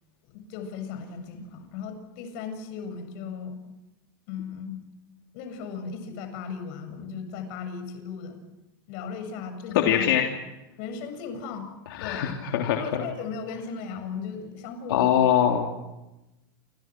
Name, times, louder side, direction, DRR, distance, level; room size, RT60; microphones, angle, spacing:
voice 1, 0.3-3.6 4.3-4.8 5.3-8.4 8.9-10.1 10.8-11.7 12.0-12.4 12.8-15.1, left 6 dB, 55° left, 7 dB, 7.2 m, -36 dB
voice 2, 9.7-10.3 12.0-13.1 14.9-15.7, left 9 dB, 75° left, 1 dB, 3.4 m, -22 dB
29.0 x 26.5 x 6.2 m, 0.96 s
supercardioid pair, 145°, 12 cm